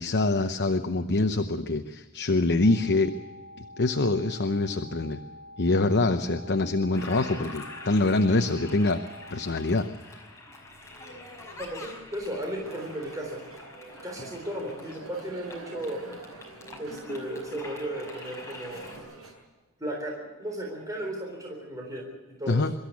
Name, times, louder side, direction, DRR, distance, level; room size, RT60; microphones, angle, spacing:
voice 1, 0.0-3.1 3.6-5.2 5.6-9.0 9.3-9.8 10.1-10.2 22.5-22.7, left 2 dB, 50° left, 7 dB, 0.8 m, -25 dB
sound 1, 2.6-9.8, left 1 dB, 30° left, 3.4 m, -47 dB
Toilet flush, 6.9-19.0, left 2 dB, 15° left, 5.5 m, -45 dB
voice 2, 11.6-13.4 14.0-16.0 16.8-18.9 19.8-22.1 22.4-22.6, right 1 dB, 15° right, -1 dB, 3.8 m, -35 dB
sound 2, 12.5-19.3, right 2 dB, 70° right, 6.6 m, -46 dB
24.0 x 14.0 x 8.4 m, 1.3 s
head